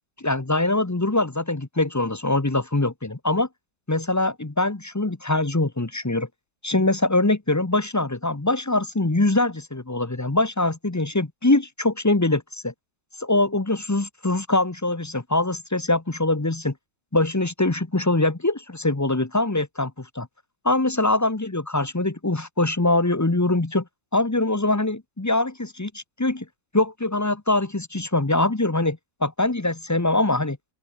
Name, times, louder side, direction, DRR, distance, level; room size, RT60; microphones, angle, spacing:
voice 1, 0.2-3.5 3.9-6.3 6.6-12.7 13.2-16.7 17.1-20.3 20.6-23.8 24.1-26.5 26.7-30.6, left 2 dB, 15° left, 0.5 m, -23 dB
open air
omnidirectional pair, 2.1 m